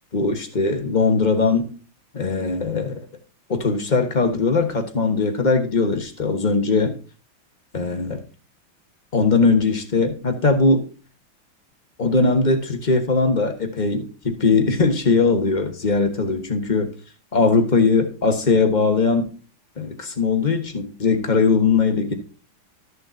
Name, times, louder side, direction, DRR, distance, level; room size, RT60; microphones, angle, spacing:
voice 1, 0.1-1.7 2.1-3.0 3.5-7.0 7.7-8.2 9.1-10.8 12.0-16.9 17.3-19.3 19.8-22.1, left 4 dB, 25° left, 1.1 m, -20 dB
13.5 x 6.8 x 2.7 m
omnidirectional pair, 2.4 m